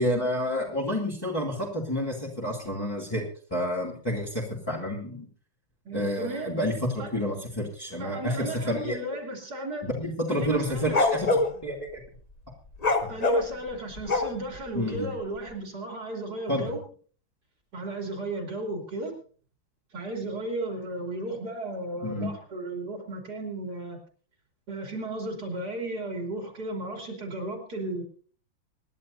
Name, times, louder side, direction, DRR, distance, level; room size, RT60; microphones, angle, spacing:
voice 1, 0.0-3.2 3.5-5.3 5.9-6.7 7.1-8.4 8.7-9.0 9.8-12.0 13.0-13.2 14.7-15.1 16.5-16.7 22.0-22.3, equal, 10° left, -5 dB, 2.6 m, -29 dB
voice 2, 5.9-6.6 7.0-7.1 8.0-9.9 10.3-11.0 13.1-16.8 17.7-19.1 19.9-24.0 24.7-28.0, right 2 dB, 55° right, 2 dB, 3.6 m, -34 dB
sound 1, 10.4-11.5 12.7-14.6, left 2 dB, 30° left, 0.7 m, -24 dB
26.0 x 11.0 x 2.7 m, 0.43 s
omnidirectional pair, 2.1 m